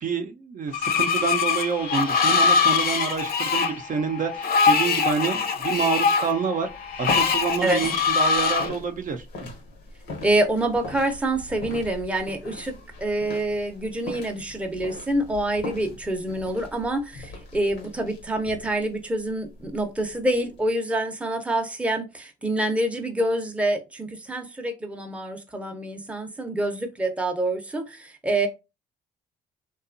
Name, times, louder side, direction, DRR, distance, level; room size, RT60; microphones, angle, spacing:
voice 1, 0.0-6.7 7.0-9.3, right 5 dB, 50° right, 5 dB, 0.5 m, -27 dB
Screech, 0.7-8.7, left 5 dB, 60° left, 0.6 m, -23 dB
sound 1, 6.7-20.7, left 2 dB, 80° left, 0.9 m, -40 dB
voice 2, 10.2-12.7 13.0-28.5, right 1 dB, 5° right, 4 dB, 0.6 m, -26 dB
2.8 x 2.3 x 2.5 m, 0.26 s
supercardioid pair, 75°, 18 cm